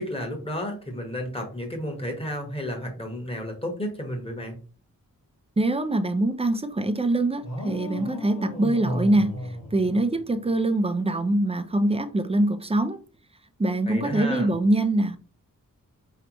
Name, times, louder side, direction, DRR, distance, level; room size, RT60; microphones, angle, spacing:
voice 1, 0.0-4.6 13.9-14.5, equal, 15° left, 1.4 m, -32 dB
voice 2, 5.6-9.3 9.7-13.0 13.6-15.2, right 1 dB, 20° right, 0.5 m, -23 dB
sound 1, 7.4-10.6, equal, 85° left, 1.6 m, -34 dB
4.8 x 3.3 x 3.0 m
wide cardioid pair, 90°, 34 cm